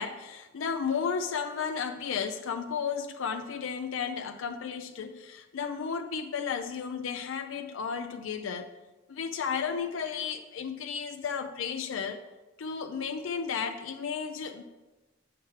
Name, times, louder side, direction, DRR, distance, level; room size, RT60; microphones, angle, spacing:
voice 1, 0.0-8.7 9.1-12.2 12.6-14.6, left 6 dB, 75° left, 7 dB, 0.4 m, -33 dB
8.4 x 5.8 x 3.2 m, 1.1 s
head